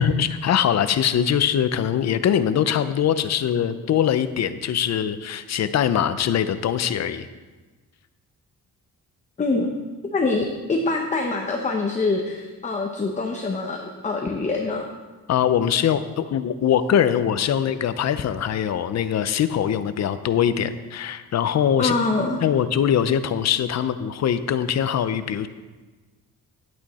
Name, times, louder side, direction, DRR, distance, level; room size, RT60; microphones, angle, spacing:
voice 1, 0.0-7.3 15.3-21.9 22.4-25.5, left 9 dB, 50° left, 12 dB, 0.6 m, -22 dB
voice 2, 9.4-9.7 10.1-14.9 21.8-22.4, left 3 dB, 20° left, 2 dB, 0.7 m, -24 dB
10.5 x 9.0 x 4.2 m, 1.3 s
wide cardioid pair, 160°, 34 cm